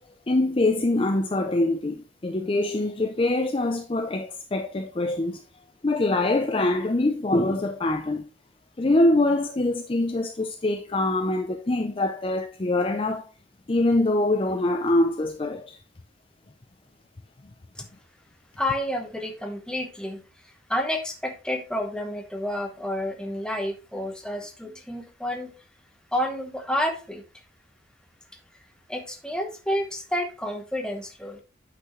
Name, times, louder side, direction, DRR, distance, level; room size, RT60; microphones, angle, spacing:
voice 1, 0.3-5.4 5.8-8.2 8.8-13.2 13.7-15.8, left 2 dB, 30° left, 0.5 m, -24 dB
voice 2, 18.6-25.5 26.1-27.2 28.9-31.4, left 1 dB, 5° left, 1.1 m, -30 dB
8.5 x 5.9 x 3.1 m
head